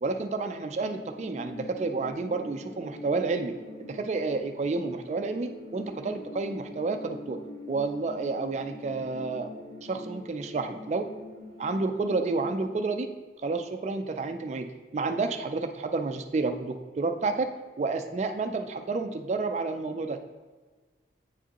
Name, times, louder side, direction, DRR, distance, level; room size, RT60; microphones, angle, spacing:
voice 1, 0.0-3.6 3.9-7.4 7.7-9.5 9.8-11.1 11.6-13.1 13.4-20.2, right 3 dB, 40° right, 6 dB, 0.3 m, -30 dB
sound 1, 0.9-12.8, left 2 dB, 70° left, 1.2 m, -44 dB
8.8 x 4.8 x 2.9 m, 1.4 s
head